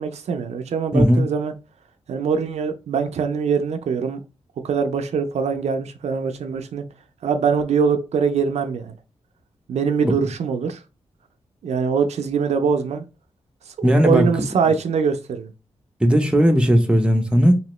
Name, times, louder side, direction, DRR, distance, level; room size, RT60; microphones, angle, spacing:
voice 1, 0.0-1.5 2.1-4.2 4.6-6.8 7.2-8.9 9.7-10.8 11.6-13.0 13.8-15.5, right 6 dB, 80° right, 0.4 m, -23 dB
voice 2, 0.9-1.2 10.0-10.1 13.8-14.3 16.0-17.5, equal, 10° right, 0.7 m, -16 dB
3.0 x 2.8 x 3.0 m
cardioid pair, 90°, 11 cm